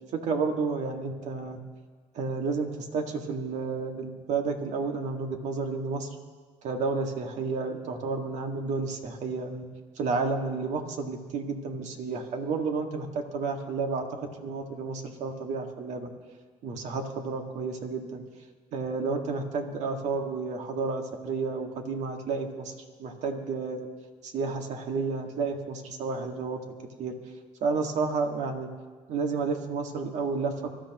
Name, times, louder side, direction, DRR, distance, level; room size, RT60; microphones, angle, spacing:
voice 1, 0.1-1.6 2.1-6.2 6.6-9.7 10.0-16.1 16.6-18.2 18.7-22.7 23.0-23.9 24.2-26.6 27.0-27.1 27.6-28.7 29.1-30.8, right 4 dB, 70° right, 3 dB, 1.9 m, -31 dB
24.5 x 13.0 x 3.1 m, 1.5 s
cardioid pair, 90°, 13 cm